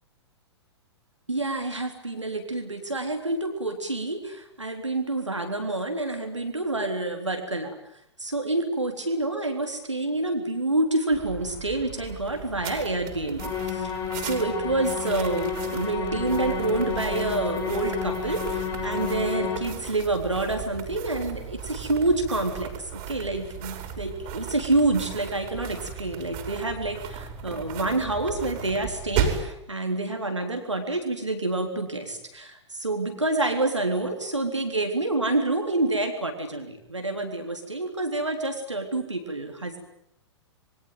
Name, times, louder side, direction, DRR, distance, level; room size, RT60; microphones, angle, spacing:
voice 1, 1.3-7.8 8.2-39.8, right 2 dB, 85° right, 4 dB, 3.7 m, -28 dB
sound 1, 11.1-29.5, right 8 dB, 35° right, 5.8 m, -36 dB
sound 2, 13.4-19.6, left 7 dB, 20° left, 5.8 m, -31 dB
28.0 x 23.0 x 9.4 m, 0.78 s
figure-of-eight pair, 105°, 15 cm